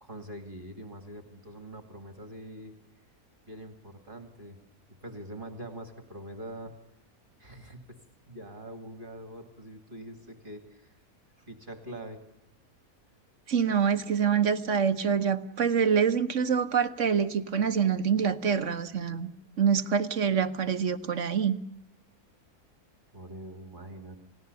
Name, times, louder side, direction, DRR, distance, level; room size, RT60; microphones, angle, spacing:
voice 1, 0.0-2.7 3.5-4.6 5.0-6.7 7.4-8.0 8.3-11.0 11.4-12.2 23.1-24.2, right 1 dB, 35° right, 6 dB, 2.6 m, -44 dB
voice 2, 13.5-19.3 19.6-21.6, right 7 dB, 55° right, 10 dB, 1.4 m, -26 dB
30.0 x 17.5 x 6.9 m, 0.83 s
omnidirectional pair, 1.6 m